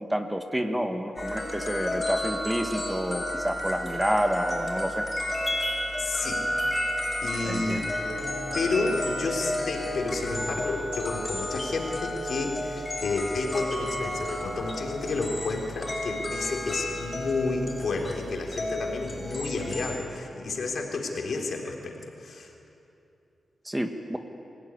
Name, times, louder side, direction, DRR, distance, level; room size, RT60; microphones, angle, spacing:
voice 1, 0.0-5.1 7.4-7.9 23.6-24.2, equal, 10° right, 5 dB, 1.5 m, -29 dB
sound 1, 1.2-20.0, left 1 dB, 20° left, 7.1 m, -32 dB
voice 2, 6.0-6.4 7.2-7.9 8.5-22.5, left 3 dB, 70° left, 1 dB, 3.6 m, -31 dB
26.0 x 16.5 x 9.7 m, 2.8 s
cardioid pair, 90°, 0 cm